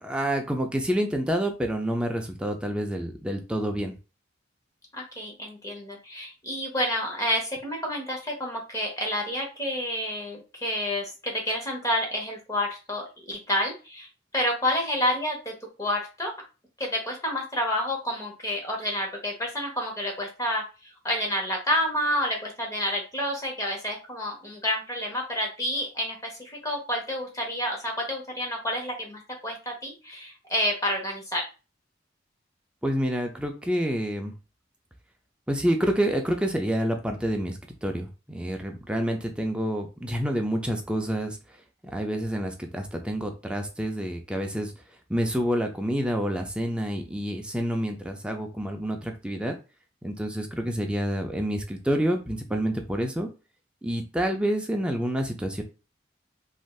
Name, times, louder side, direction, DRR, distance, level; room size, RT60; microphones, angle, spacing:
voice 1, 0.0-3.9 32.8-34.3 35.5-41.4 41.9-44.7 45.1-49.6 50.0-53.3 53.8-55.6, equal, 5° right, 3 dB, 0.4 m, -28 dB
voice 2, 4.9-14.1 14.3-15.5 15.8-16.3 16.8-31.4, equal, 20° left, 0 dB, 0.9 m, -29 dB
3.2 x 2.6 x 2.3 m, 0.31 s
head